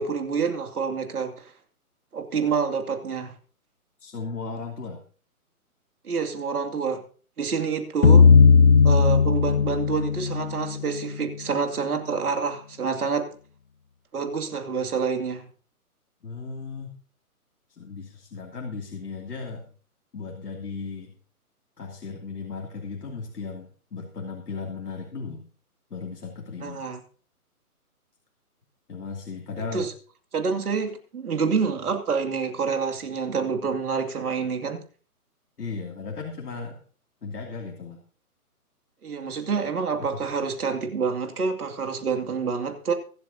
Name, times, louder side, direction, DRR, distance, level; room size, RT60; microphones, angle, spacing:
voice 1, 0.0-1.5 2.1-3.3 6.0-7.0 7.4-8.3 8.8-13.3 14.1-15.5 26.6-27.0 29.7-29.9 30.3-34.8 39.0-42.9, right 5 dB, 75° right, 2.6 m, -27 dB
voice 2, 4.0-5.0 16.2-16.9 17.7-19.7 20.1-21.1 21.8-25.4 25.9-26.8 28.9-29.9 35.6-36.8 37.2-38.0 40.1-40.2, left 4 dB, 90° left, 2.9 m, -36 dB
sound 1, 8.0-11.1, left 5 dB, 45° left, 0.6 m, -17 dB
23.5 x 8.0 x 2.8 m
hypercardioid pair, 165°, 45 cm